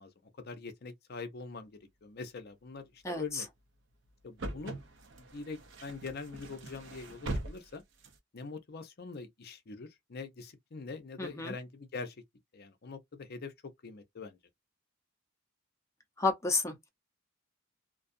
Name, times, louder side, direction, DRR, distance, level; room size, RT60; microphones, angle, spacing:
voice 1, 0.0-1.7 2.0-3.5 4.2-4.8 5.2-7.8 8.3-12.2 12.5-13.5 13.8-14.4, left 4 dB, 50° left, 0.6 m, -43 dB
voice 2, 3.0-3.4 11.2-11.5 16.2-16.9, left 3 dB, 15° left, 0.7 m, -31 dB
sound 1, 3.0-3.3 4.1-4.2 4.4-8.2, right 2 dB, 65° right, 0.7 m, -41 dB
2.6 x 2.3 x 2.5 m
head